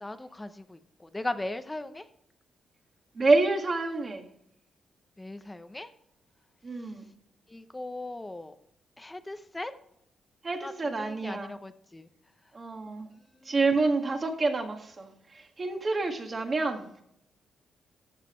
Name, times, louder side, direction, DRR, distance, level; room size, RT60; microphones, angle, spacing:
voice 1, 0.0-2.1 5.2-5.9 6.8-6.9 7.5-8.6 9.0-9.7 10.6-12.1 13.4-13.6, left 2 dB, 15° left, 10 dB, 0.8 m, -38 dB
voice 2, 3.2-4.3 6.6-7.1 10.4-11.5 12.5-13.1 13.5-17.0, right 3 dB, 35° right, 4 dB, 1.8 m, -28 dB
14.0 x 7.5 x 3.1 m, 0.72 s
cardioid pair, 115°, 0 cm